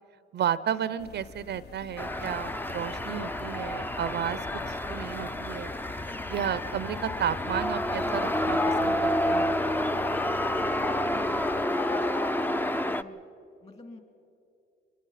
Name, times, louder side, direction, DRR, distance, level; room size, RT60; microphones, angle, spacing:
voice 1, 0.3-4.4 4.7-5.7 6.3-9.6, right 9 dB, 60° right, 16 dB, 0.6 m, -32 dB
sound 1, 1.0-11.7, left 6 dB, 55° left, 1.0 m, -45 dB
sound 2, 2.0-13.0, left 1 dB, 10° left, 0.6 m, -29 dB
voice 2, 10.7-13.2 13.6-14.0, left 2 dB, 35° left, 5 dB, 3.1 m, -48 dB
24.5 x 20.5 x 5.8 m, 2.6 s
cardioid pair, 90°, 20 cm